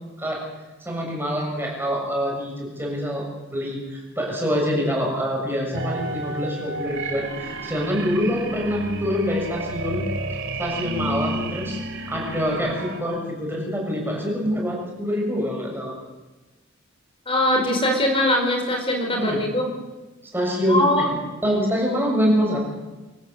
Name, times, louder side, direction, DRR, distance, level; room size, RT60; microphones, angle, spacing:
voice 1, 0.9-10.1 10.6-11.8 12.1-15.9 19.1-19.4 20.3-21.2 21.4-22.6, equal, 10° right, -1 dB, 7.0 m, -25 dB
sound 1, 5.7-13.0, right 2 dB, 65° right, 3.0 m, -31 dB
voice 2, 17.3-19.7 20.7-21.1, left 1 dB, 25° left, 3 dB, 4.8 m, -21 dB
26.0 x 14.5 x 8.2 m, 1.1 s
head